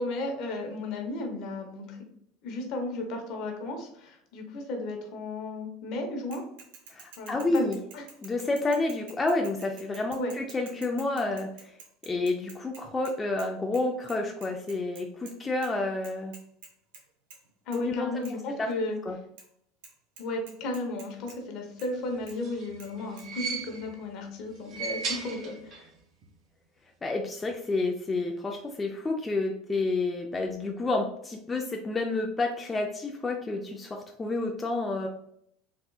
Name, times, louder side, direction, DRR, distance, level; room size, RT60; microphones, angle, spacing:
voice 1, 0.0-2.0 2.4-6.4 7.2-8.0 10.2-10.3 17.7-19.0 20.2-25.9, left 2 dB, 60° left, 3 dB, 0.9 m, -34 dB
Bicycle / Mechanisms, 6.3-13.5 13.7-13.8 14.1-15.3 15.6-15.7 16.0-17.0 17.3-17.5 17.7-17.8 18.2-18.3 19.4-19.5 19.8-19.9 20.2-21.4 21.8-21.9 22.3-22.4 22.8-22.9 23.2-23.3, right 5 dB, 80° right, 0.9 m, -49 dB
voice 2, 6.9-7.8 8.2-11.7 12.0-16.4 17.7-18.2 18.6-18.7 19.1-19.2 27.0-35.1, left 2 dB, 15° left, 2 dB, 0.3 m, -29 dB
sound 1, 22.1-24.1 24.5-26.0 26.2-26.3 27.4-27.5, right 5 dB, 45° right, 0.7 m, -37 dB
3.5 x 2.7 x 2.3 m, 0.71 s
supercardioid pair, 120°, 0 cm